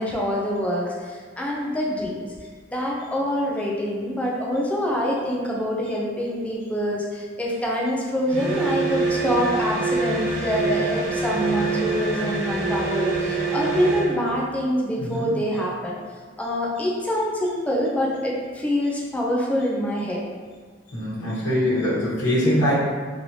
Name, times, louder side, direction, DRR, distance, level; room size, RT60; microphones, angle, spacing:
voice 1, 0.0-2.3 2.7-16.0 16.4-20.2, equal, 5° left, -3 dB, 0.5 m, -25 dB
sound 1, 8.3-14.2, right 4 dB, 80° right, 0.6 m, -25 dB
voice 2, 15.0-15.3 20.9-22.7, left 1 dB, 75° left, -10 dB, 1.2 m, -23 dB
3.1 x 2.8 x 2.7 m, 1.5 s
head